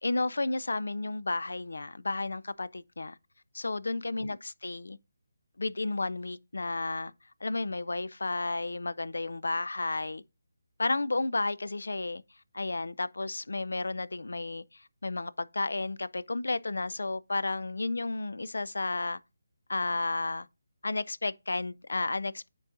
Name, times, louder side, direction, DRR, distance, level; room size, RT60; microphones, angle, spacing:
voice 1, 0.0-3.2 3.5-5.0 5.6-7.1 7.4-10.2 10.8-12.2 12.5-19.2 19.7-20.5 20.8-22.5, left 2 dB, 80° left, 0.4 m, -32 dB
9.7 x 3.9 x 2.5 m
figure-of-eight pair, 160°, 0 cm